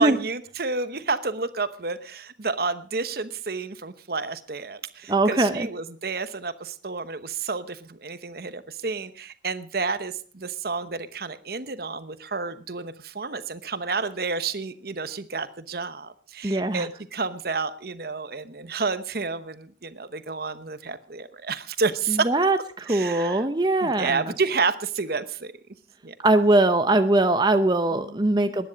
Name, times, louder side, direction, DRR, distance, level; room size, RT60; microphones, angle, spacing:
voice 1, 0.0-22.3 22.9-23.5 23.8-25.5 26.0-26.1 27.9-28.5, right 4 dB, 55° right, 12 dB, 1.0 m, -30 dB
voice 2, 5.1-5.7 16.4-16.9 22.1-24.3 26.2-28.7, right 2 dB, 25° right, 8 dB, 0.7 m, -21 dB
19.5 x 10.5 x 5.1 m, 0.41 s
head